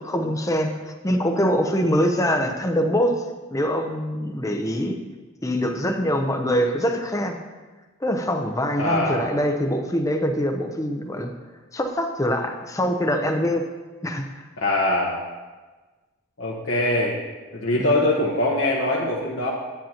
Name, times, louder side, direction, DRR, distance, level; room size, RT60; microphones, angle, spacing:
voice 1, 0.0-3.2 3.5-5.0 5.4-7.4 8.0-11.3 11.7-13.6 14.0-14.4 17.7-18.0, equal, 15° left, 4 dB, 0.6 m, -24 dB
voice 2, 8.8-9.3 14.6-15.2 16.4-17.2 17.5-19.5, left 1 dB, 65° left, -4 dB, 1.1 m, -22 dB
10.0 x 9.0 x 2.9 m, 1.3 s
head